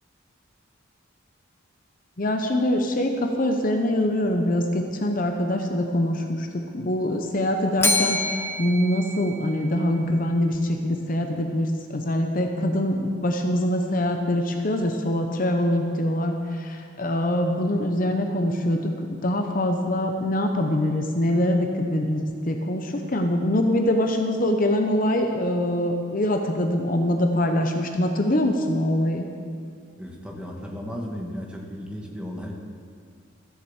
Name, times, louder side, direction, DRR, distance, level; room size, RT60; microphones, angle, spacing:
voice 1, 2.2-29.2, left 1 dB, 40° left, 4 dB, 0.8 m, -24 dB
Bell, 7.8-10.0, left 2 dB, 10° left, 0.7 m, -27 dB
voice 2, 30.0-32.5, equal, 5° right, 0 dB, 1.4 m, -35 dB
14.0 x 7.5 x 7.3 m, 2.3 s
head